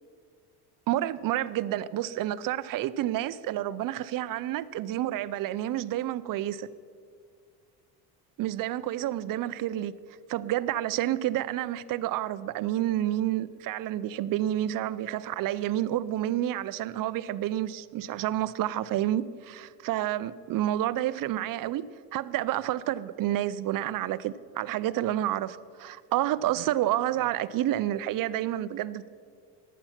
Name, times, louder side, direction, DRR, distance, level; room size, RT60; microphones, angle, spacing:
voice 1, 0.9-6.7 8.4-9.9 10.3-21.9 22.1-29.1, right 13 dB, 50° right, 0.5 m, -29 dB
11.5 x 9.3 x 5.8 m
supercardioid pair, 90°, 45 cm